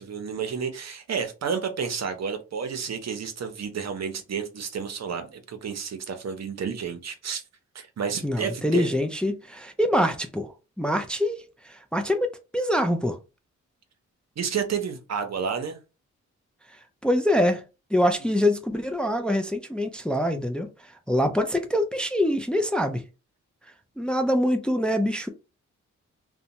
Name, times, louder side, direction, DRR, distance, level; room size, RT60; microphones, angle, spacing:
voice 1, 0.0-7.4 7.7-8.9 14.4-15.8, right 6 dB, 60° right, 0.7 m, -31 dB
voice 2, 8.2-13.2 17.0-17.6 17.9-23.0 24.0-25.3, left 1 dB, 5° left, 0.4 m, -25 dB
2.7 x 2.2 x 2.6 m
cardioid pair, 55°, 30 cm